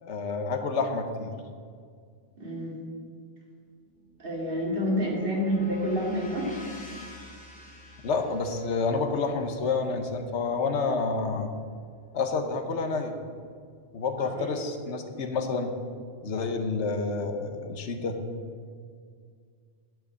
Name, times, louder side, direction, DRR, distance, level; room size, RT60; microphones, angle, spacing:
voice 1, 0.0-1.3 8.0-11.5 12.1-13.1 13.9-15.7 16.2-18.2, left 4 dB, 80° left, 6 dB, 1.2 m, -29 dB
voice 2, 2.4-2.8 4.2-6.5 14.2-14.4, equal, 50° right, -3 dB, 2.4 m, -28 dB
sound 1, 3.8-12.0, left 1 dB, 5° left, 1.8 m, -48 dB
10.5 x 4.8 x 7.9 m, 2.1 s
omnidirectional pair, 1.2 m